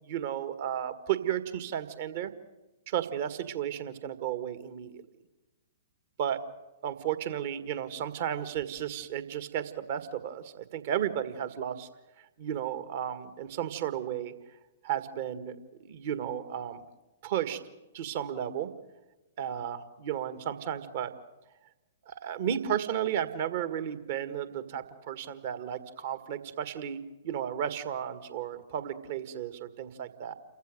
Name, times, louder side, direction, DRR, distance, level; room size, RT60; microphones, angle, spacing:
voice 1, 0.0-2.3 2.9-4.9 6.2-6.4 6.8-11.9 12.4-14.3 14.8-15.6 15.8-16.8 17.2-17.6 17.9-18.7 19.4-21.1 22.1-27.0 27.2-30.3, right 10 dB, 45° right, 11 dB, 1.8 m, -33 dB
29.0 x 15.0 x 9.3 m, 1.1 s
figure-of-eight pair, 110°, 0 cm